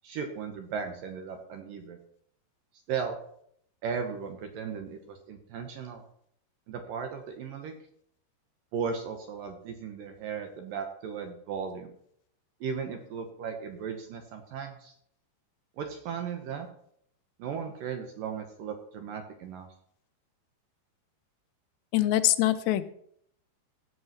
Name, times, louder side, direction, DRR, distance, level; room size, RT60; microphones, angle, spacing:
voice 1, 0.0-2.0 2.9-3.2 3.8-6.0 6.7-7.7 8.7-11.9 12.6-14.9 15.8-16.7 17.4-19.7, right 6 dB, 70° right, 5 dB, 2.3 m, -36 dB
voice 2, 21.9-22.8, left 14 dB, 85° left, 11 dB, 2.9 m, -24 dB
15.5 x 5.6 x 5.8 m, 0.66 s
omnidirectional pair, 4.9 m